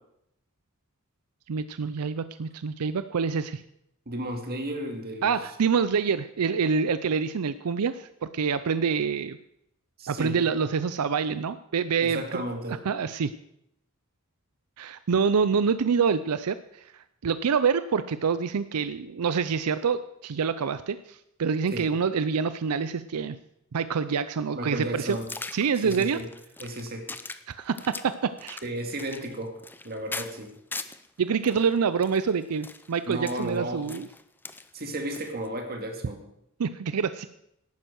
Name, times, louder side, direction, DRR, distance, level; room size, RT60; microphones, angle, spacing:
voice 1, 1.5-3.6 5.2-8.1 8.3-9.4 10.1-12.4 12.7-13.3 14.8-23.4 23.7-25.2 25.5-26.2 27.5-28.6 31.2-34.1 36.6-37.3, right 6 dB, 85° right, 13 dB, 0.5 m, -26 dB
voice 2, 4.1-5.4 10.0-10.4 12.0-12.8 21.7-21.9 24.5-25.3 25.8-26.3 26.6-27.1 28.6-29.5 29.8-30.5 33.1-33.8 34.7-36.2, right 1 dB, 45° right, 4 dB, 2.3 m, -33 dB
sound 1, 25.1-31.1 31.4-35.5, left 3 dB, 10° left, 0.5 m, -41 dB
12.0 x 9.2 x 7.5 m, 0.79 s
head